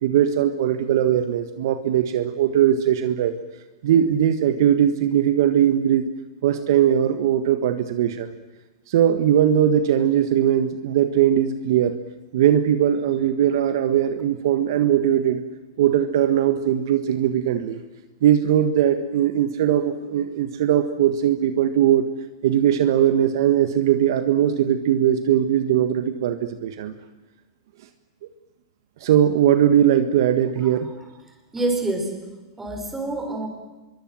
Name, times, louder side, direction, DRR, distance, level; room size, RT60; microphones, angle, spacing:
voice 1, 0.0-3.3 3.8-6.0 6.4-8.3 8.9-12.0 12.3-15.4 15.8-17.8 18.2-22.1 22.4-26.9 29.0-30.9, right 10 dB, 65° right, 9 dB, 1.5 m, -20 dB
voice 2, 31.5-32.2 32.6-33.5, right 2 dB, 10° right, 3 dB, 6.0 m, -26 dB
25.0 x 23.0 x 7.6 m, 1.1 s
hypercardioid pair, 120°, 2 cm